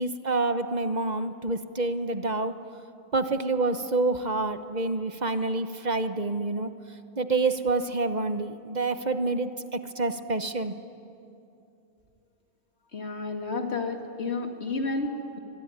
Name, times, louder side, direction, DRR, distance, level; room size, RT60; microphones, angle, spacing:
voice 1, 0.0-2.5 3.1-6.7 7.2-10.7, right 3 dB, 45° right, 9 dB, 1.1 m, -27 dB
voice 2, 12.9-15.4, left 3 dB, 85° left, 4 dB, 2.6 m, -31 dB
24.5 x 22.0 x 9.7 m, 2.7 s
omnidirectional pair, 1.1 m